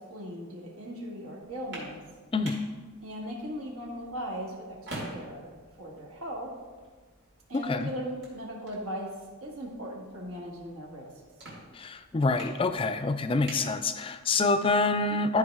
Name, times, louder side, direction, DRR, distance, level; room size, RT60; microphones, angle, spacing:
voice 1, 0.0-2.0 3.0-5.5 5.8-6.5 7.5-9.1 9.4-11.1, equal, 80° right, -1 dB, 1.8 m, -38 dB
sound 1, 1.4-14.5, right 1 dB, 50° right, 2.4 m, -48 dB
voice 2, 11.8-15.4, left 3 dB, 25° left, 10 dB, 0.4 m, -26 dB
13.0 x 4.7 x 3.6 m, 1.4 s
head